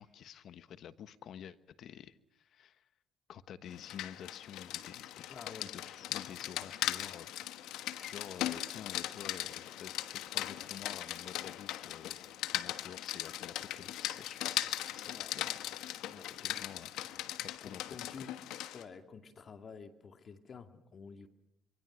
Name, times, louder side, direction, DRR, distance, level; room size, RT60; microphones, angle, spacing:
voice 1, 0.0-2.9 3.3-7.7 8.0-12.2 12.5-16.0 16.4-16.9 17.5-18.2, left 9 dB, 65° left, 14 dB, 1.2 m, -50 dB
Rain, 3.7-18.8, left 13 dB, 85° left, 1.2 m, -39 dB
voice 2, 5.3-5.7 15.1-15.4 15.7-16.7 17.6-18.3 18.7-21.3, left 5 dB, 50° left, 7 dB, 2.4 m, -50 dB
26.5 x 23.5 x 6.3 m, 0.85 s
cardioid pair, 80°, 0 cm